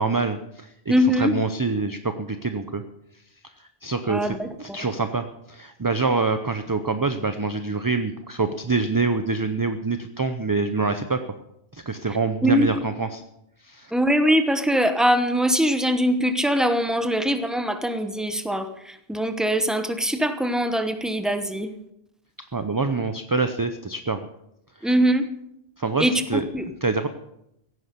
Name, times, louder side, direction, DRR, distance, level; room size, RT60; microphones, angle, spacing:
voice 1, 0.0-2.8 3.8-11.2 11.7-13.2 13.6-13.9 22.5-24.3 24.8-24.9 25.8-26.4 26.8-27.1, right 4 dB, 25° right, 9 dB, 0.6 m, -26 dB
voice 2, 0.9-1.3 4.1-4.8 12.4-12.8 13.9-21.7 24.8-25.3 26.0-26.7, equal, ahead, 8 dB, 1.0 m, -22 dB
16.0 x 9.5 x 6.7 m, 0.81 s
omnidirectional pair, 1.0 m